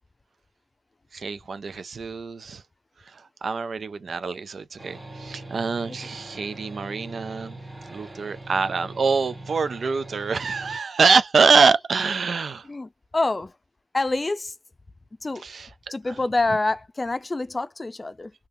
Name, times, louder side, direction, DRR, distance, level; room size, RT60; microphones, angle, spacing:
voice 1, 1.1-2.6 3.1-7.6 7.9-12.7 15.4-15.7, right 5 dB, 90° right, 0.3 m, -24 dB
sound 1, 4.8-10.8, right 1 dB, 45° right, 1.3 m, -41 dB
voice 2, 12.6-13.5 13.9-14.5 15.2-15.4 15.9-18.3, left 2 dB, 45° left, 0.4 m, -26 dB
3.5 x 2.7 x 2.6 m
cardioid pair, 40°, 0 cm